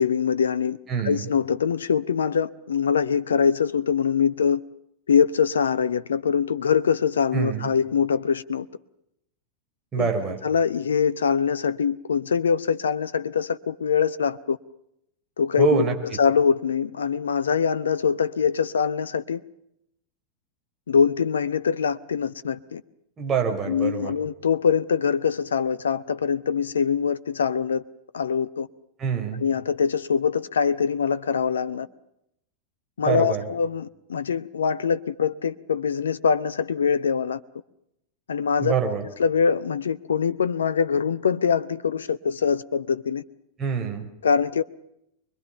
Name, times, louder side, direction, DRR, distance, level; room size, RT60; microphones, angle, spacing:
voice 1, 0.0-0.8 1.0-4.6 5.1-8.7 10.0-10.1 10.4-14.6 15.4-19.4 20.9-22.8 23.7-27.8 28.1-28.7 29.4-31.9 33.0-37.4 38.3-38.8 39.2-43.2 44.2-44.6, left 6 dB, 70° left, 0.8 m, -23 dB
voice 2, 0.9-1.3 7.3-7.7 9.9-10.4 15.6-15.9 23.2-24.1 29.0-29.4 33.0-33.4 38.6-39.0 43.6-44.1, right 6 dB, 25° right, 5.2 m, -25 dB
25.0 x 22.0 x 6.9 m
figure-of-eight pair, 90°, 0 cm